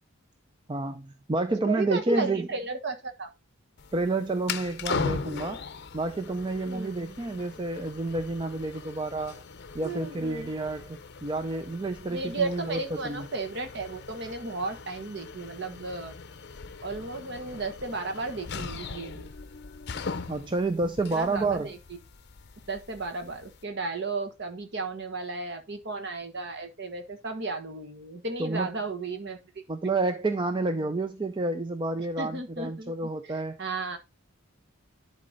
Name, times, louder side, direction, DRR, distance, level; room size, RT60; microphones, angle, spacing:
voice 1, 0.7-2.5 3.9-5.6 5.9-9.4 9.7-13.3 20.3-21.7 28.4-28.7 29.7-33.6, right 2 dB, 20° right, 0.4 m, -29 dB
voice 2, 1.6-3.3 6.7-6.9 9.8-10.5 12.1-16.1 16.8-19.3 21.1-21.8 22.7-29.6 32.2-32.9 33.2-34.0, right 3 dB, 50° right, 1.4 m, -34 dB
sound 1, 3.8-23.6, left 4 dB, 50° left, 0.6 m, -39 dB
10.5 x 4.3 x 4.0 m
head